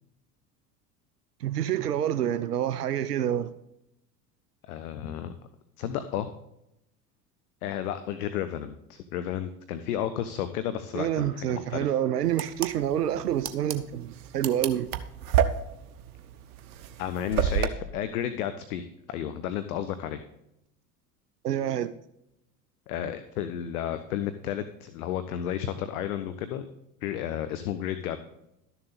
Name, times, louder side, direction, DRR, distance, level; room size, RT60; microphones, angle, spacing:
voice 1, 1.4-3.5 10.9-14.9 21.4-21.9, right 11 dB, 85° right, 0.5 m, -27 dB
voice 2, 4.7-5.3 5.8-6.3 7.6-11.9 17.0-20.2 22.9-26.7 27.0-28.2, left 10 dB, 65° left, 0.8 m, -32 dB
sound 1, 12.3-17.7, right 9 dB, 65° right, 0.9 m, -29 dB
12.5 x 7.0 x 4.0 m
figure-of-eight pair, 70°, 46 cm